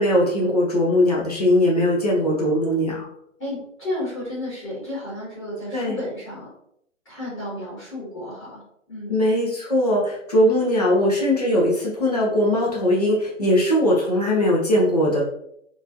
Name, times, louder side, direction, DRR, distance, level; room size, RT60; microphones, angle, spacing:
voice 1, 0.0-3.1 5.7-6.0 9.1-15.2, left 1 dB, 30° left, -4 dB, 0.5 m, -20 dB
voice 2, 3.4-6.5 7.0-8.6 8.9-9.2, left 1 dB, 15° left, -10 dB, 1.4 m, -32 dB
2.9 x 2.4 x 2.5 m, 0.72 s
figure-of-eight pair, 135°, 39 cm